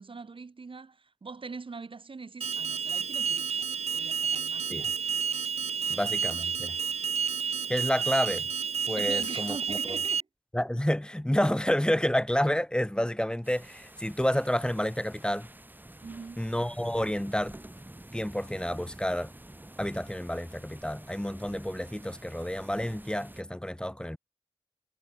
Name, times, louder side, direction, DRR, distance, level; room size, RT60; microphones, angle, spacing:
voice 1, 0.0-3.7 3.9-5.0 5.7-6.1 9.0-10.3 16.0-16.4, right 4 dB, 55° right, 0.9 m, -43 dB
Alarm, 2.4-10.2, right 6 dB, 85° right, 0.7 m, -30 dB
voice 2, 5.9-6.8 7.7-8.5 8.9-10.0 10.5-15.5 16.4-17.6 18.1-19.3 19.8-24.2, equal, 10° left, 1.5 m, -29 dB
sound 1, 13.4-23.4, right 1 dB, 15° right, 2.3 m, -48 dB
cardioid pair, 55°, 11 cm